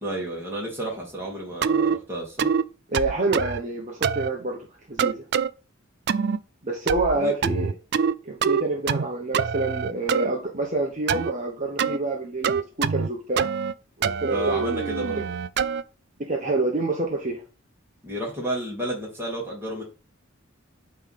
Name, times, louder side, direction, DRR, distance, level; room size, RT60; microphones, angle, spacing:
voice 1, 0.0-2.5 7.1-7.3 14.3-15.2 18.0-19.8, right 1 dB, 10° right, 2.4 m, -31 dB
sound 1, 1.6-2.0 2.4-2.6 2.9-3.6 4.0-4.3 5.0-5.5 6.1-6.4 6.9-7.2 7.4-8.1 8.4-9.1 9.3-10.3 11.1-11.3 11.8-12.0 12.4-13.1 13.4-13.7 14.0-15.8, right 6 dB, 55° right, 0.4 m, -24 dB
voice 2, 2.9-4.6 4.9-5.2 6.6-7.7 8.2-13.5 14.0-14.8 15.2-15.3 16.2-17.4, right 2 dB, 35° right, 1.1 m, -27 dB
8.8 x 3.4 x 5.7 m
head